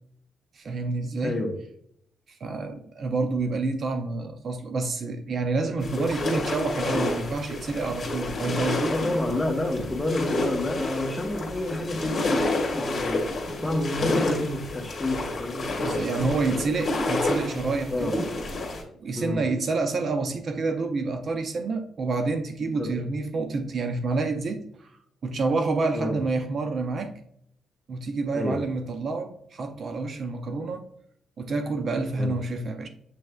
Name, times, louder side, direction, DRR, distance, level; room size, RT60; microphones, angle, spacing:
voice 1, 0.5-1.4 2.3-8.9 15.8-18.2 19.0-24.9 25.2-27.1 27.9-30.9 31.4-32.9, right 3 dB, 45° right, 0.5 m, -28 dB
sound 1, 5.8-18.8, left 2 dB, 40° left, 1.5 m, -29 dB
voice 2, 8.9-16.1 17.9-18.2 19.2-19.4 22.8-23.1 25.9-26.2 28.3-28.6 32.2-32.3, left 1 dB, 15° left, 0.9 m, -29 dB
7.5 x 3.1 x 2.2 m
cardioid pair, 125°, 0 cm